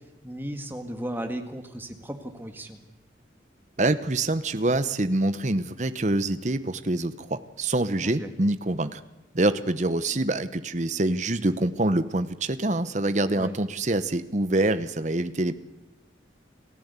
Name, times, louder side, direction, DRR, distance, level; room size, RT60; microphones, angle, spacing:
voice 1, 0.2-2.8 8.0-8.3 13.3-13.6, right 1 dB, 10° right, 5 dB, 1.8 m, -35 dB
voice 2, 3.8-9.0 9.3-15.5, right 2 dB, 40° right, 12 dB, 0.9 m, -25 dB
28.5 x 14.5 x 8.3 m, 1.0 s
head